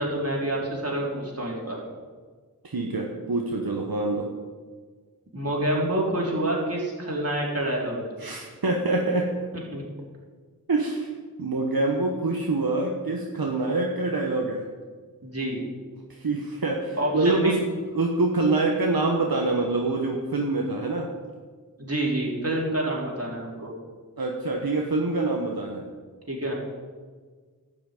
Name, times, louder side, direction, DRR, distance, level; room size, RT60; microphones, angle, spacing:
voice 1, 0.0-1.8 5.3-8.1 9.7-9.8 13.4-13.5 15.2-15.6 17.0-17.5 21.8-23.7 26.3-26.5, right 1 dB, 40° right, -3 dB, 4.0 m, -27 dB
voice 2, 2.6-4.3 8.2-9.4 10.7-11.1 11.4-14.6 16.1-17.6 17.9-21.1 24.2-25.9, right 2 dB, 70° right, 0 dB, 1.3 m, -25 dB
12.0 x 6.1 x 9.1 m, 1.5 s
wide cardioid pair, 50°, 37 cm